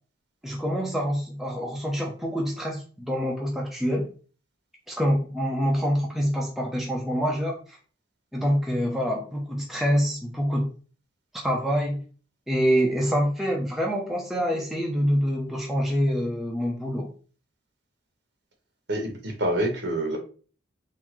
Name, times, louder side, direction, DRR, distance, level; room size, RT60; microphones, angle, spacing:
voice 1, 0.4-4.1 4.9-7.8 8.3-10.7 11.3-12.0 12.5-17.1, equal, ahead, -2 dB, 0.5 m, -26 dB
voice 2, 18.9-20.2, right 1 dB, 55° right, 1 dB, 1.2 m, -27 dB
3.6 x 2.5 x 3.0 m, 0.38 s
head